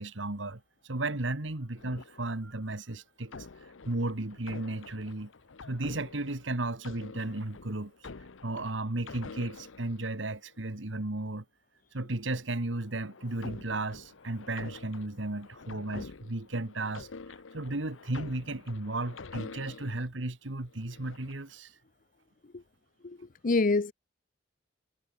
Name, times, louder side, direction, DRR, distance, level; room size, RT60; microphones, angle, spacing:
voice 1, 0.0-3.5 3.8-5.3 5.7-7.9 8.4-11.4 11.9-17.1 17.5-21.7, right 2 dB, 70° right, 1.8 m, -34 dB
sound 1, 1.8-2.7 3.3-10.6 12.5-20.1 20.7-21.5, left 4 dB, 85° left, 0.9 m, -48 dB
voice 2, 23.0-23.9, left 3 dB, 45° left, 0.6 m, -27 dB
head